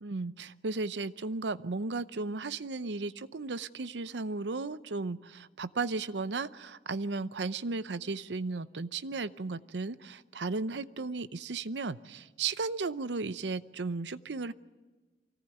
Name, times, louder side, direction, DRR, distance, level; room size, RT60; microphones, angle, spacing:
voice 1, 0.0-14.5, right 3 dB, 85° right, 15 dB, 0.7 m, -35 dB
24.0 x 17.5 x 9.2 m, 1.3 s
head